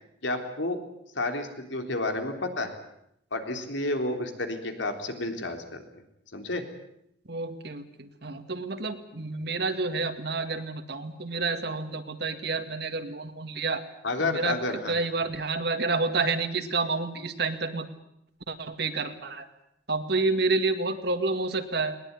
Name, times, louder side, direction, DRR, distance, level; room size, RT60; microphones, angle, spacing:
voice 1, 0.2-0.8 1.1-2.8 3.3-5.8 6.3-6.6 14.0-14.9, left 2 dB, 90° left, 5 dB, 3.6 m, -30 dB
voice 2, 7.3-13.9 14.2-14.6 14.9-17.9 18.5-19.5 19.9-22.0, right 3 dB, 60° right, 8 dB, 2.1 m, -29 dB
20.5 x 20.0 x 9.7 m, 0.77 s
head